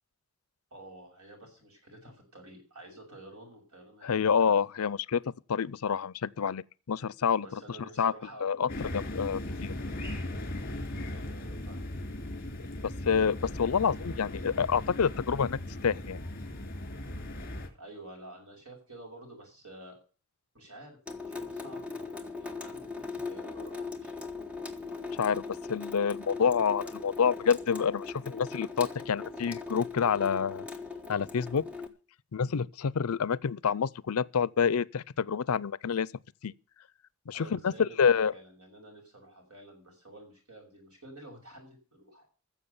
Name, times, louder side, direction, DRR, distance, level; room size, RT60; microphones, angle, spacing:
voice 1, 0.7-4.6 7.4-8.8 11.1-11.9 17.8-19.9 20.5-24.2 37.3-42.3, right 1 dB, 80° right, 6.7 m, -50 dB
voice 2, 4.0-5.2 5.5-7.6 8.0-8.1 8.4-9.7 13.1-16.2 25.2-25.4 25.7-30.6 31.1-31.6 32.3-36.1 36.4-36.5 37.3-38.3, left 6 dB, 80° left, 0.5 m, -28 dB
sound 1, 8.7-17.7, left 1 dB, 40° left, 3.3 m, -38 dB
Water tap faucet / Sink (filling or washing) / Drip, 21.1-31.9, left 4 dB, 5° right, 1.3 m, -40 dB
15.5 x 7.3 x 6.9 m
head